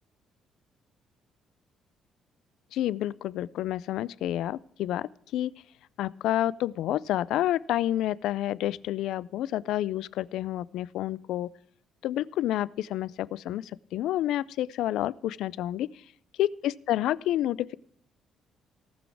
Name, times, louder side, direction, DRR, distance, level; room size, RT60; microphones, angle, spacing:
voice 1, 2.7-5.5 6.0-11.5 12.0-15.9 16.4-17.7, left 13 dB, 80° left, 20 dB, 0.4 m, -29 dB
18.0 x 6.2 x 4.6 m, 0.65 s
cardioid pair, 165°, 0 cm